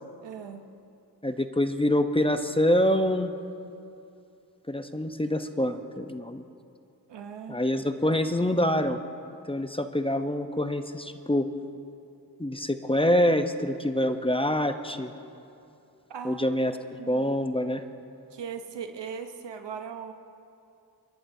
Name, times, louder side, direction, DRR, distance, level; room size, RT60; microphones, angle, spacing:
voice 1, 0.2-0.6 7.1-7.6 16.1-16.6 17.0-17.3 18.3-20.1, right 7 dB, 85° right, 6 dB, 1.0 m, -39 dB
voice 2, 1.2-3.3 4.7-6.4 7.5-9.0 9.5-11.5 12.4-15.1 16.2-17.8, left 1 dB, 15° left, 8 dB, 0.7 m, -26 dB
28.0 x 11.5 x 2.7 m, 2.6 s
cardioid pair, 45°, 41 cm